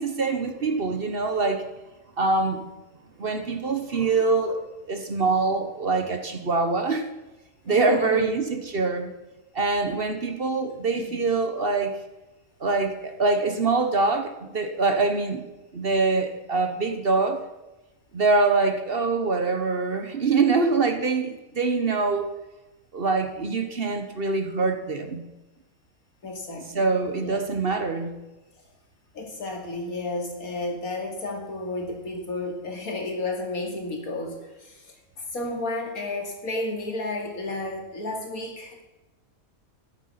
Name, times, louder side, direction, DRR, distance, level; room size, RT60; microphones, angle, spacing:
voice 1, 0.0-1.6 2.2-2.6 3.2-7.1 7.7-9.1 9.5-11.9 12.6-15.4 15.7-17.4 18.1-22.3 22.9-25.2 26.7-28.1, right 3 dB, 45° right, 7 dB, 1.2 m, -24 dB
voice 2, 7.7-8.3 11.0-11.2 26.2-27.4 29.1-38.9, left 2 dB, 80° left, 2 dB, 2.8 m, -32 dB
13.0 x 10.5 x 5.7 m, 1.1 s
omnidirectional pair, 1.5 m